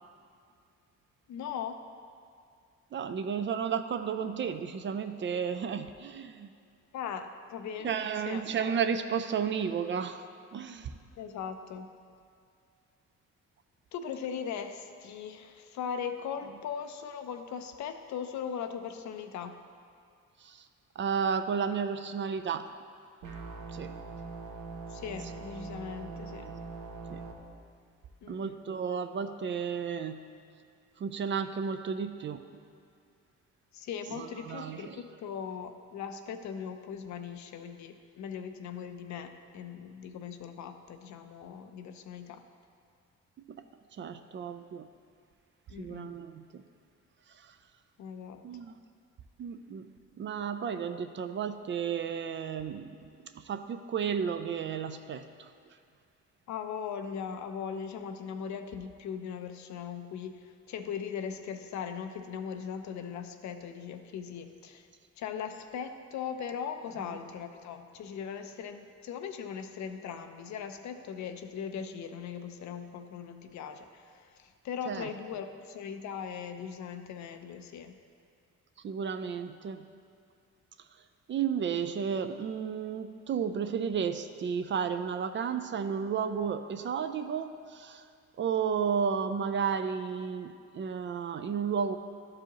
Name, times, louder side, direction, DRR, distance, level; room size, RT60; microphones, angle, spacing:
voice 1, 1.3-1.8 6.9-7.9 8.3-8.4 11.2-11.9 13.9-19.6 24.9-26.5 28.2-28.5 33.7-42.4 45.7-46.1 48.0-48.4 56.5-64.9 65.2-77.9, left 7 dB, 70° left, 7 dB, 0.6 m, -39 dB
voice 2, 2.9-6.5 7.8-10.3 10.5-11.0 20.4-20.7 21.0-22.7 23.7-23.9 26.4-26.6 27.1-27.2 28.3-30.3 31.0-32.4 34.1-35.0 43.5-43.6 43.9-44.9 45.8-46.6 47.3-47.6 48.4-48.7 49.4-49.9 50.2-55.5 74.9-75.1 78.8-79.9 81.3-88.1 88.4-92.0, right 7 dB, 40° right, 9 dB, 0.4 m, -33 dB
sound 1, 23.2-27.3, right 4 dB, 85° right, 0.9 m, -42 dB
11.5 x 4.8 x 2.9 m, 2.4 s
cardioid pair, 90°, 30 cm